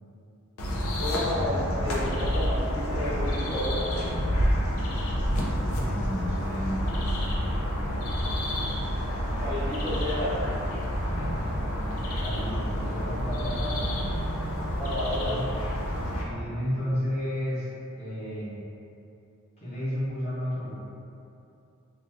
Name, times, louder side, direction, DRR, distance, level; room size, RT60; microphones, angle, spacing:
sound 1, 0.6-16.2, equal, 80° left, 0.5 m, -29 dB
voice 1, 1.0-4.0 9.4-10.3 14.8-15.3, left 1 dB, 20° right, -11 dB, 0.6 m, -31 dB
voice 2, 5.7-6.8 11.0-11.6 11.8-14.2 15.2-15.4 16.2-17.7 17.9-18.5 19.6-20.7, equal, 30° left, -11 dB, 0.9 m, -32 dB
2.5 x 2.3 x 3.3 m, 2.7 s
head